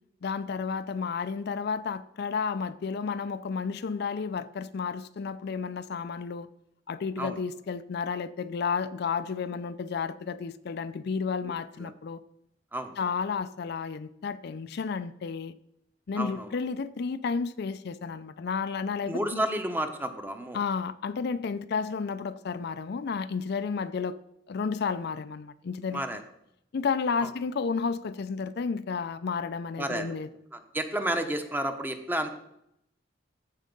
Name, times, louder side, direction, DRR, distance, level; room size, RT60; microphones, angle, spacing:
voice 1, 0.2-6.5 6.9-12.2 13.0-15.5 16.1-19.4 20.5-24.2 24.5-26.0 26.7-30.3, left 5 dB, 55° left, 0.4 m, -32 dB
voice 2, 16.2-16.5 19.0-20.6 25.9-26.2 27.2-27.3 29.8-30.2 30.5-32.3, right 1 dB, 10° right, 0.8 m, -31 dB
14.0 x 4.7 x 5.3 m
head